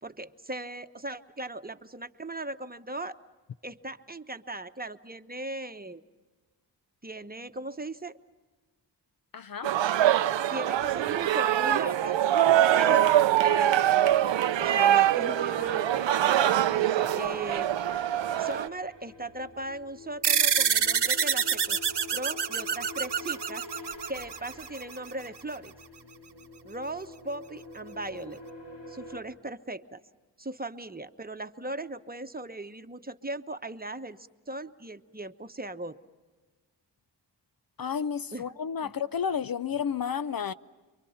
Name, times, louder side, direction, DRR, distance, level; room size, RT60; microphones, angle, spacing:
voice 1, 0.0-3.2 3.6-6.0 7.0-8.2 10.5-12.2 12.6-13.1 13.4-17.7 18.4-21.8 22.1-23.7 24.1-25.7 26.6-28.4 28.9-30.0 30.4-36.0 38.3-38.5 38.8-38.9, right 2 dB, 20° right, 1.0 m, -38 dB
voice 2, 9.3-9.7 37.8-40.5, left 7 dB, 55° left, 0.6 m, -31 dB
sound 1, 9.6-18.7, right 11 dB, 85° right, 0.6 m, -24 dB
sound 2, 10.8-29.2, left 1 dB, 70° left, 3.8 m, -47 dB
sound 3, 20.2-25.1, right 7 dB, 65° right, 1.1 m, -27 dB
28.5 x 23.5 x 5.8 m
cardioid pair, 50°, 44 cm